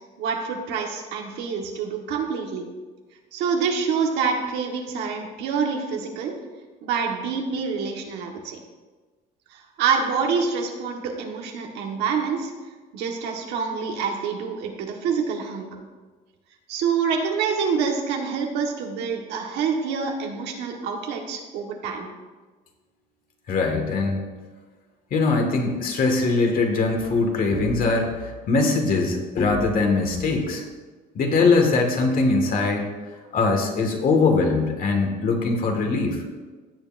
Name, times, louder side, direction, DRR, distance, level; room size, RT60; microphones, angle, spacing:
voice 1, 0.2-2.6 3.3-6.4 6.8-8.6 9.5-12.5 12.9-15.8 16.7-22.1, right 6 dB, 90° right, 2 dB, 1.5 m, -26 dB
voice 2, 23.5-24.3 25.1-30.6 31.2-32.9 33.3-36.2, left 3 dB, 55° left, 3 dB, 1.8 m, -21 dB
16.0 x 7.3 x 2.6 m, 1.3 s
cardioid pair, 110°, 17 cm